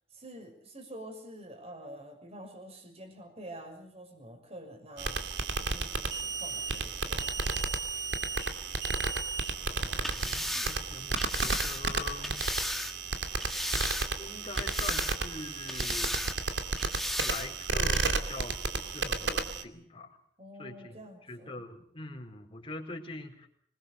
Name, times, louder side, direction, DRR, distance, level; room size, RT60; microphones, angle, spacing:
voice 1, 0.1-5.2 5.6-7.3 20.4-21.6, right 1 dB, 35° right, 5 dB, 6.3 m, -47 dB
sound 1, 5.0-19.6, right 4 dB, 75° right, 2.6 m, -33 dB
voice 2, 9.7-12.4 14.2-16.2 17.2-20.2 20.6-23.5, left 2 dB, 30° left, 2 dB, 4.5 m, -43 dB
sound 2, 10.0-12.9 13.4-14.3 14.5-15.4 15.7-16.4 16.8-17.5 17.9-18.1, left 1 dB, ahead, 1.4 m, -35 dB
26.0 x 21.5 x 6.6 m, 0.67 s
head